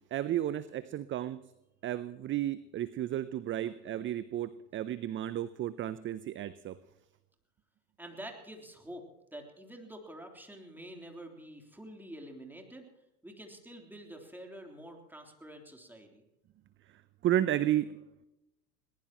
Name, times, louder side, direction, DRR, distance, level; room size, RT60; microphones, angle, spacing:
voice 1, 0.1-1.4 1.8-6.8 17.2-18.0, right 12 dB, 25° right, 16 dB, 0.6 m, -32 dB
voice 2, 8.0-9.1 9.3-12.9 13.2-16.2, right 1 dB, 5° right, 2 dB, 3.4 m, -47 dB
21.5 x 19.5 x 3.0 m, 0.95 s
hypercardioid pair, 85°, 49 cm